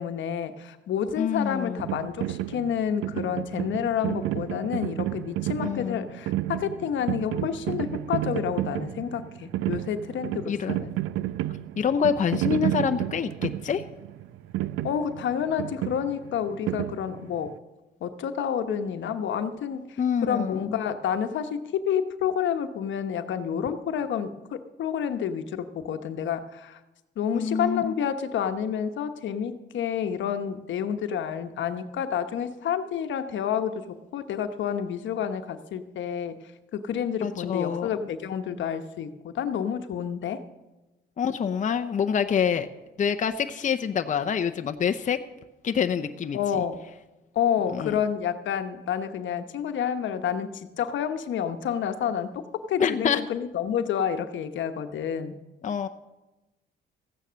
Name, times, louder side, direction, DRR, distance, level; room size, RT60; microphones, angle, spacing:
voice 1, 0.0-10.9 14.8-17.5 18.0-26.8 27.2-36.4 36.7-40.4 46.3-46.8 47.3-55.3, left 8 dB, 70° left, 8 dB, 1.0 m, -29 dB
voice 2, 1.2-1.8 5.6-6.1 10.5-10.7 11.8-13.8 20.0-20.8 27.3-27.9 37.2-37.9 41.2-42.7 43.0-45.2 45.6-46.6 47.7-48.0 52.8-53.2 55.6-55.9, left 7 dB, 40° left, 7 dB, 0.7 m, -26 dB
sound 1, 1.8-17.5, right 14 dB, 85° right, 0.5 m, -31 dB
15.0 x 9.4 x 6.3 m, 1.1 s
cardioid pair, 90°, 20 cm